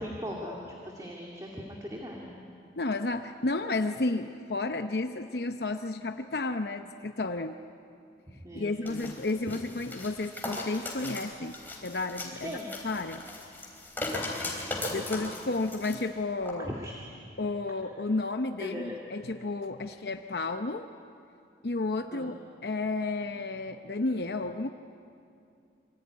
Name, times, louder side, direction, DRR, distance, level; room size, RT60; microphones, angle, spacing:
voice 1, 0.0-2.4 8.4-9.1 12.4-12.7 16.6-16.9 18.6-19.0 22.1-22.3, equal, 20° right, -1 dB, 2.4 m, -39 dB
voice 2, 2.8-7.6 8.5-12.6 12.8-13.2 14.9-16.7 17.4-20.9 21.6-24.7, left 2 dB, 65° left, 7 dB, 0.8 m, -32 dB
sound 1, 8.9-16.0 16.4-16.5, left 2 dB, 10° left, 3.8 m, -38 dB
26.5 x 23.5 x 9.5 m, 2.5 s
head